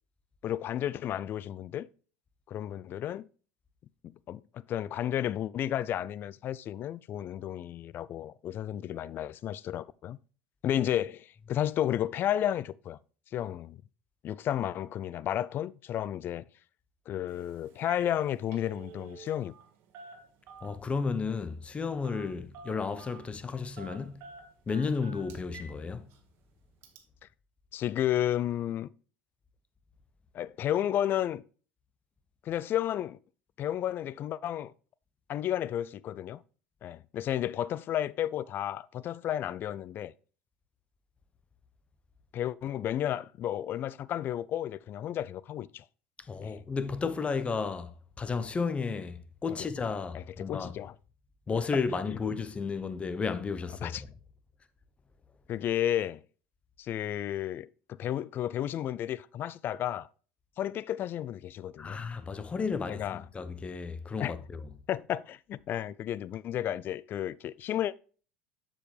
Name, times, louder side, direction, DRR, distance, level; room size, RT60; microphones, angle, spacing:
voice 1, 0.4-1.9 2.5-3.3 4.0-10.2 10.6-13.0 13.3-13.8 14.2-16.4 17.1-19.5 27.7-28.9 30.3-31.4 32.4-33.2 33.6-34.7 35.3-36.4 36.8-40.1 42.3-45.8 46.4-46.6 50.1-50.9 52.1-52.2 53.8-54.0 55.5-56.2 56.8-60.1 60.6-62.0 62.9-63.2 64.2-64.3 64.9-68.0, left 11 dB, 45° left, 0.4 m, -32 dB
Telephone, 17.3-17.4 17.7-18.1 18.4-19.7 19.9-20.9 22.0-22.3 22.5-23.2 23.8-25.7 26.1-26.2 26.8-27.0, right 4 dB, 55° right, 1.8 m, -48 dB
voice 2, 20.6-24.2 24.7-26.1 46.2-50.8 51.5-53.9 61.8-64.7, left 5 dB, 25° left, 0.9 m, -33 dB
7.3 x 7.0 x 3.3 m
hypercardioid pair, 85°, 5 cm